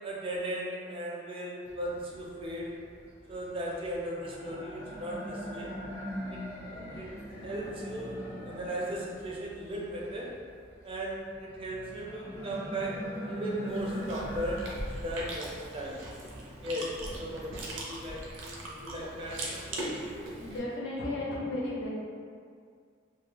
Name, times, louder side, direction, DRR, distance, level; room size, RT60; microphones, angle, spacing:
voice 1, 0.0-2.8 3.3-5.7 6.3-6.4 6.7-7.1 7.4-10.3 10.8-12.9 13.3-14.6 15.0-16.0 16.6-20.3, right 1 dB, 30° right, -3 dB, 0.4 m, -37 dB
sound 1, 1.6-19.8, equal, 15° left, 0.7 m, -42 dB
Chewing mastication, 13.7-20.6, right 1 dB, 90° right, 0.5 m, -40 dB
voice 2, 20.4-21.9, left 1 dB, 85° left, -5 dB, 0.7 m, -34 dB
2.3 x 2.2 x 3.2 m, 2.1 s
head